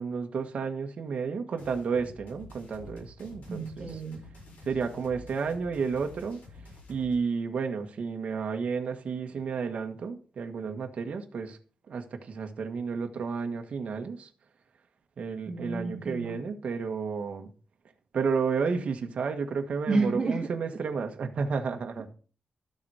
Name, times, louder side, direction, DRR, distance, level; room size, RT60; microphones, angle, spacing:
voice 1, 0.0-3.9 4.6-6.4 6.9-11.6 11.9-14.3 15.2-17.5 18.1-22.1, right 5 dB, 55° right, 1.6 m, -31 dB
sound 1, 1.6-7.1, left 2 dB, 80° left, 7.7 m, -49 dB
voice 2, 3.5-4.3 15.5-16.5 19.9-20.5, right 3 dB, 35° right, 2.5 m, -30 dB
13.0 x 7.2 x 4.9 m
wide cardioid pair, 140°, 3 cm